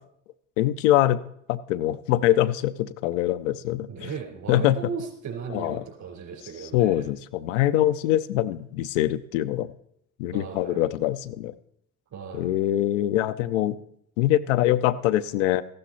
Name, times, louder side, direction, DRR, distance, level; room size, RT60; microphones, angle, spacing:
voice 1, 0.6-1.2 1.5-4.1 4.5-4.8 5.5-5.8 6.6-9.7 10.2-11.5 12.3-13.7 14.2-15.6, left 13 dB, 85° left, 11 dB, 0.6 m, -23 dB
voice 2, 3.9-7.0 10.3-10.8 12.1-12.5, right 6 dB, 55° right, 3 dB, 4.5 m, -36 dB
14.0 x 12.0 x 4.2 m, 0.73 s
hypercardioid pair, 65°, 36 cm